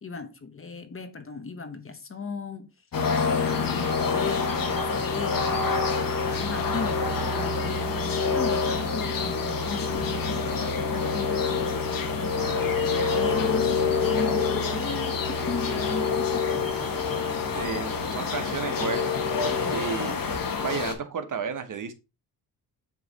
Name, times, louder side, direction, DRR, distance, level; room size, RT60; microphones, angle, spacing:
voice 1, 0.0-2.7 3.5-5.7 6.4-16.7 17.7-18.4 19.5-20.1, left 4 dB, 30° left, 1.0 m, -37 dB
sound 1, 2.9-20.9, left 5 dB, 50° left, 1.4 m, -26 dB
voice 2, 17.5-19.2 19.7-20.2 20.6-21.9, right 6 dB, 45° right, 1.0 m, -32 dB
8.2 x 3.1 x 3.9 m
cardioid pair, 85°, 42 cm